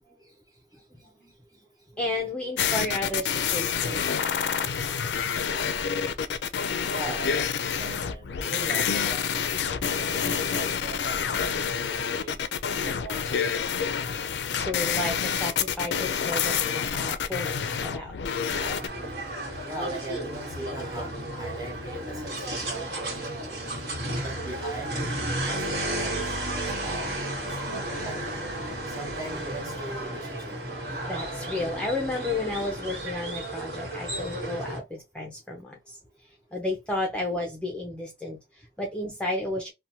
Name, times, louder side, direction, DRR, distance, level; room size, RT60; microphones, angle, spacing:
voice 1, 1.9-4.3 14.6-17.6 17.8-18.2 28.6-28.7 30.9-36.0 36.5-39.7, left 2 dB, 5° left, 0.4 m, -32 dB
sound 1, 2.6-18.9, left 7 dB, 75° left, 0.4 m, -28 dB
voice 2, 6.9-12.4 12.8-13.3 19.6-23.8 24.2-26.3 26.6-27.1 27.4-28.3 28.9-30.6, right 2 dB, 20° right, 0.9 m, -40 dB
sound 2, 18.5-34.8, right 1 dB, 65° right, 1.2 m, -33 dB
2.7 x 2.1 x 2.6 m
head